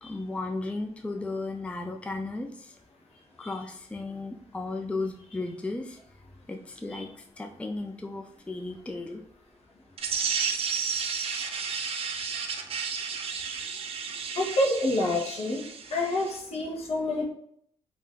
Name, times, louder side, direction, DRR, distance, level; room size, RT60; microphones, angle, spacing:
voice 1, 0.0-2.8 3.4-6.1 6.5-9.2, left 2 dB, 10° left, 4 dB, 0.3 m, -35 dB
sound 1, 10.0-16.4, right 6 dB, 55° right, 0.4 m, -32 dB
voice 2, 14.4-15.7 15.9-17.2, left 1 dB, 60° left, -1 dB, 0.9 m, -28 dB
3.5 x 2.5 x 2.3 m, 0.65 s
cardioid pair, 65°, 12 cm